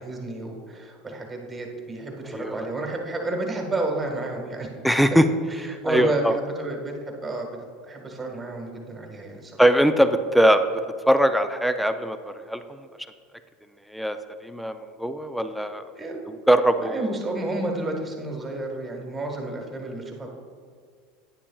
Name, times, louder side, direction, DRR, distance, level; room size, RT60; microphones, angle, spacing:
voice 1, 0.0-4.7 5.6-7.5 7.8-9.6 15.9-16.2 16.5-20.3, right 2 dB, 20° right, 2 dB, 1.5 m, -31 dB
voice 2, 2.3-2.6 4.8-5.3 5.6-6.4 9.6-10.6 11.1-12.6 13.9-15.9 16.5-17.1, equal, ahead, 9 dB, 0.4 m, -21 dB
9.9 x 9.8 x 2.3 m, 2.1 s
supercardioid pair, 115°, 0 cm